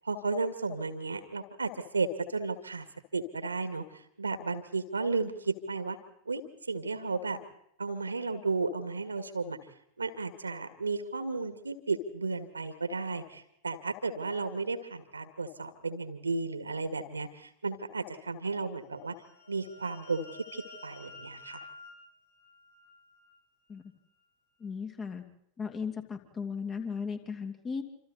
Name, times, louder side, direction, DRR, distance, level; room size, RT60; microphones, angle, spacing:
voice 1, 0.0-2.9 3.1-3.8 4.2-6.0 6.3-6.4 6.7-7.4 7.8-9.6 10.0-19.2 19.5-20.3 20.5-21.6, right 3 dB, 80° right, 10 dB, 2.1 m, -33 dB
sound 1, 18.9-23.4, left 3 dB, 65° left, 8.0 m, -51 dB
voice 2, 24.6-25.2 25.6-27.8, left 5 dB, 25° left, 5 dB, 2.7 m, -36 dB
27.5 x 26.5 x 4.2 m, 0.73 s
figure-of-eight pair, 90°, 0 cm